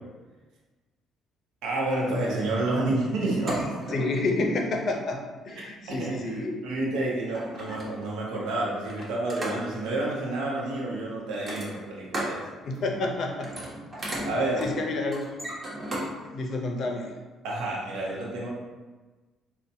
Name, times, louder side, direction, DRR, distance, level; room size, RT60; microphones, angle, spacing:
voice 1, 1.6-3.8 5.6-5.7 6.0-12.4 14.2-14.6 17.4-18.5, right 2 dB, 90° right, -4 dB, 0.8 m, -29 dB
sound 1, 3.3-4.3 5.4-5.6 6.8-6.9 7.2-8.2 8.9-9.9 11.3-12.4 12.7-13.1 13.3-16.1 16.5-16.6, right 1 dB, 30° right, 0.9 m, -35 dB
voice 2, 3.9-5.2 5.4-6.6 12.6-13.5 14.6-15.3 16.3-17.1, left 2 dB, 55° left, 1 dB, 0.5 m, -29 dB
4.0 x 2.2 x 2.6 m, 1.2 s
cardioid pair, 110°, 0 cm